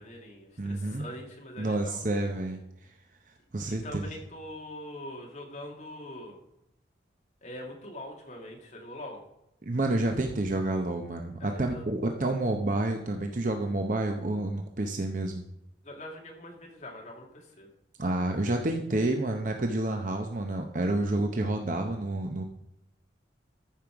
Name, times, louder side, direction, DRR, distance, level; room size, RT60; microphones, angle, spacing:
voice 1, 0.0-2.0 3.7-6.4 7.4-9.2 11.4-11.8 15.8-17.7, left 1 dB, 35° left, 0 dB, 2.4 m, -43 dB
voice 2, 0.6-1.0 1.6-2.6 3.5-4.1 9.6-15.4 18.0-22.4, right 2 dB, 45° right, 4 dB, 0.8 m, -29 dB
14.0 x 5.6 x 4.7 m, 0.82 s
head